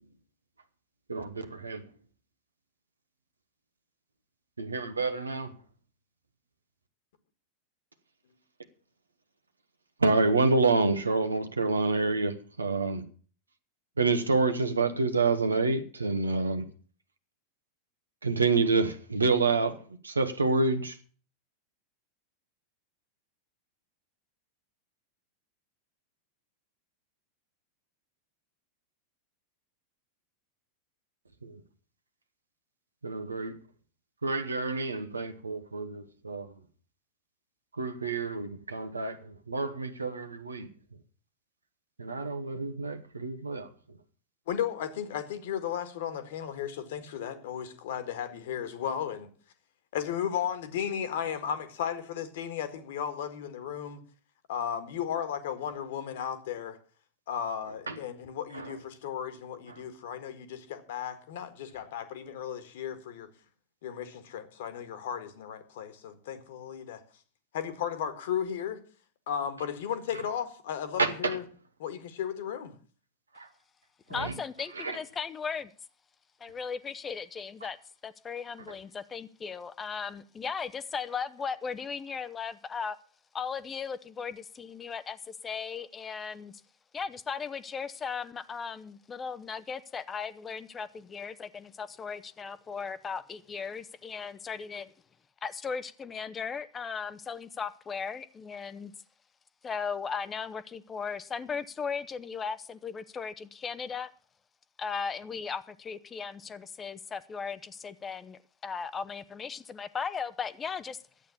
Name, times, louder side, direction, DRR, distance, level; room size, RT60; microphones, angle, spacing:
voice 1, 1.1-1.9 4.6-5.5 10.0-13.0 14.0-16.6 18.2-19.8 20.0-21.0 31.4-31.6 33.0-33.5 34.2-36.5 37.8-40.7 42.0-43.7 57.9-58.0 58.5-58.8 59.7-59.8 71.0-71.4 73.3-73.5 74.1-74.3 74.8-75.0, right 3 dB, 75° right, 1.2 m, -28 dB
voice 2, 44.5-49.3 49.9-54.0 54.5-56.8 57.3-63.3 63.8-67.0 67.5-68.8 69.3-71.4 71.8-72.7, left 9 dB, 55° left, 1.7 m, -35 dB
voice 3, 74.1-75.7 76.4-77.8 78.0-83.0 83.3-86.6 86.9-94.9 95.4-98.9 99.6-104.1 104.8-111.0, left 6 dB, 20° left, 0.7 m, -37 dB
12.0 x 8.7 x 7.0 m
figure-of-eight pair, 90°, 0 cm